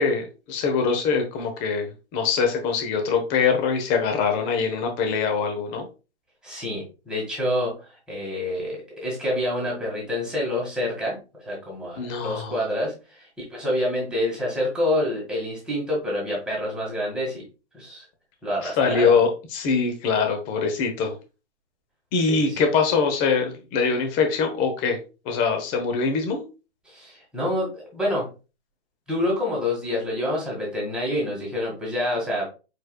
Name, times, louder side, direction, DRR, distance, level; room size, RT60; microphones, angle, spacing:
voice 1, 0.0-5.9 12.0-12.5 18.6-21.1 22.1-25.0 25.2-26.4, left 5 dB, 25° left, 5 dB, 1.0 m, -23 dB
voice 2, 6.4-17.4 17.7-18.1 18.4-19.2 22.3-22.7 26.9-28.3 29.1-32.4, left 1 dB, ahead, -5 dB, 1.9 m, -27 dB
4.7 x 4.5 x 2.3 m, 0.31 s
hypercardioid pair, 140°, 34 cm